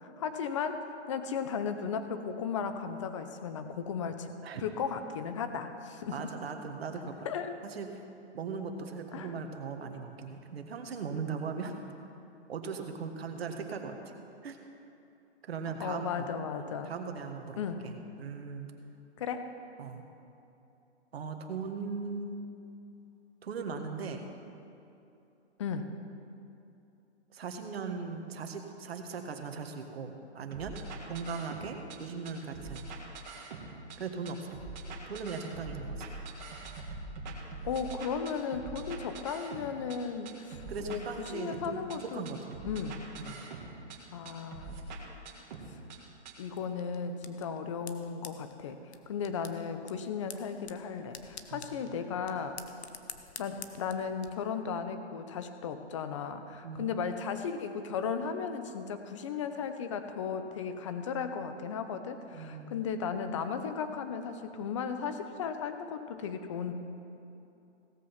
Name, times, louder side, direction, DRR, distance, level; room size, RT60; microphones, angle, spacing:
voice 1, 0.0-4.3 4.6-6.3 7.2-7.5 9.1-9.3 15.8-16.9 17.6-17.9 19.2-19.5 25.6-25.9 37.6-41.0 41.3-42.2 42.6-43.0 44.1-44.8 46.4-48.8 49.1-52.8 53.4-66.7, left 6 dB, 25° left, 8 dB, 0.6 m, -35 dB
voice 2, 6.1-7.3 7.6-7.9 8.3-11.7 12.5-14.0 14.4-14.6 15.4-16.3 16.6-18.7 19.8-20.0 21.1-22.4 23.4-24.2 27.3-30.7 31.0-32.8 34.0-34.5 35.1-36.1 40.7-42.5 43.2-43.4 51.5-51.8 56.6-56.9 62.3-62.7, right 5 dB, 60° right, 5 dB, 1.5 m, -39 dB
sound 1, 30.5-32.0 32.2-34.0 34.3-40.0 40.3-42.0 42.3-44.0 44.3-46.0 46.3-46.4, right 3 dB, 40° right, 1.9 m, -43 dB
sound 2, 46.5-54.3, left 7 dB, 65° left, 1.0 m, -49 dB
17.0 x 7.6 x 5.8 m, 2.8 s
hypercardioid pair, 155°, 35 cm